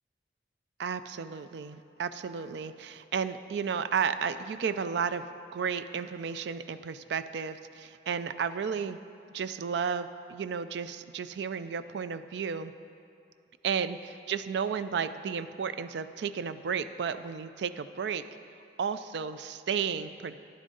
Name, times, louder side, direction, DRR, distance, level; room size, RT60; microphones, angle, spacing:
voice 1, 0.8-5.2 5.5-9.0 9.3-12.7 13.6-18.2 18.8-20.4, right 6 dB, 65° right, 12 dB, 0.3 m, -33 dB
10.5 x 10.0 x 3.9 m, 2.6 s
head